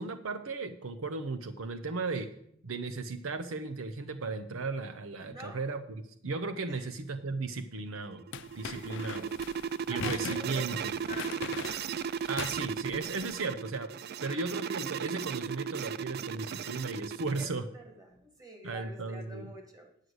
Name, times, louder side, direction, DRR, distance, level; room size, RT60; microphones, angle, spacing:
voice 1, 0.0-2.3 2.6-5.8 6.2-8.2 8.6-9.3 9.9-10.8 12.3-13.9 14.2-17.6 18.6-19.5, right 3 dB, 75° right, 11 dB, 0.7 m, -36 dB
voice 2, 5.2-5.6 6.7-6.9 8.6-9.4 9.9-11.8 14.2-14.5 17.3-19.9, equal, 20° right, 3 dB, 2.2 m, -48 dB
sound 1, 8.0-17.5, right 7 dB, 50° right, 0.4 m, -36 dB
sound 2, 8.3-13.3, left 6 dB, 65° left, 0.6 m, -42 dB
9.7 x 6.5 x 7.8 m, 0.70 s
head